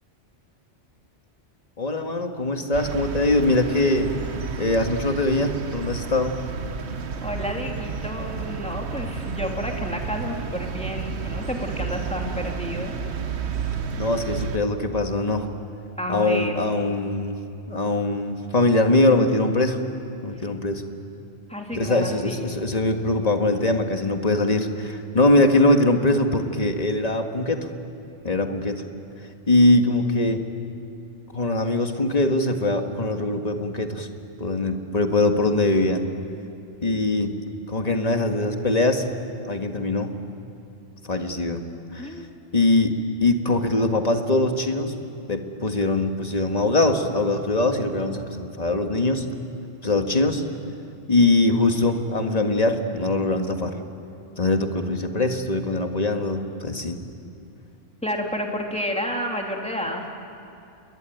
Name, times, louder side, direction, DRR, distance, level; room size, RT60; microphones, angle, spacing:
voice 1, 1.8-4.1 4.6-6.4 14.0-15.5 16.1-17.4 17.7-19.8 20.2-20.8 21.7-27.7 28.2-28.8 29.5-30.4 31.3-34.1 34.4-36.0 36.8-37.4 37.7-39.1 39.5-40.1 41.1-41.6 41.9-42.2 42.5-42.9 43.2-44.9 45.3-49.3 49.8-50.4 51.1-53.8 54.4-57.0, left 2 dB, 35° left, 5 dB, 1.8 m, -22 dB
sound 1, 2.7-14.6, right 5 dB, 65° right, 1.3 m, -31 dB
voice 2, 7.1-12.9 16.0-16.6 20.3-20.4 21.5-22.6 42.0-42.3 58.0-60.2, equal, 5° left, 0 dB, 3.0 m, -30 dB
29.0 x 22.0 x 9.3 m, 2.6 s
omnidirectional pair, 1.2 m